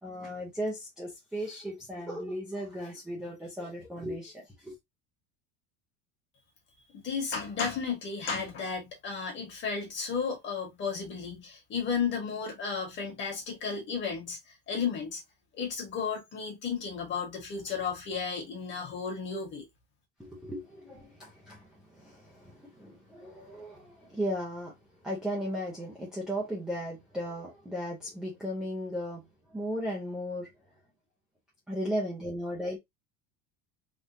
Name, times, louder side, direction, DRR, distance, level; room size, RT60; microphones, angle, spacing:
voice 1, 0.0-4.7 20.2-24.7 25.0-30.5 31.7-32.8, equal, ahead, 0.5 m, -36 dB
voice 2, 6.9-15.2 15.6-19.6, left 6 dB, 30° left, 1.4 m, -33 dB
3.6 x 2.5 x 2.6 m
cardioid pair, 170°, 40 cm